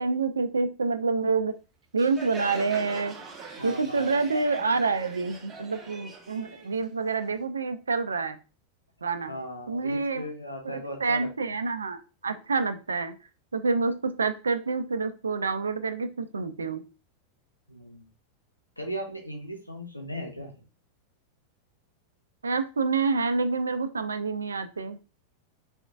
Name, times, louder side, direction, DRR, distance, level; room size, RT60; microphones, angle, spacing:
voice 1, 0.0-1.5 1.9-3.1 3.6-8.4 9.0-9.3 9.7-10.3 10.6-13.1 13.5-16.8 22.4-25.0, right 4 dB, 75° right, 10 dB, 0.5 m, -27 dB
Crowd, 2.0-7.4, right 4 dB, 20° right, 1.1 m, -42 dB
voice 2, 3.6-4.2 9.3-11.6 17.7-18.1 18.8-20.5, equal, 85° left, 2 dB, 0.9 m, -37 dB
4.3 x 3.8 x 2.3 m, 0.33 s
figure-of-eight pair, 90°, 0 cm